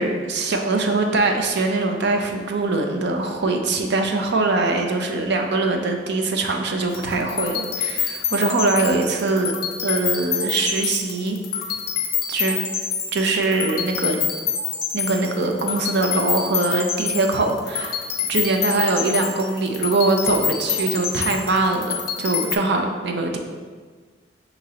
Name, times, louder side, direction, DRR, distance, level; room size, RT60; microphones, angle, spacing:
voice 1, 0.0-9.5 9.8-11.4 12.3-12.6 13.1-14.2 14.9-18.0 18.3-23.4, right 3 dB, 65° right, 4 dB, 0.5 m, -22 dB
sound 1, 6.9-22.6, left 7 dB, 55° left, 0.6 m, -27 dB
6.2 x 2.9 x 2.8 m, 1.5 s
head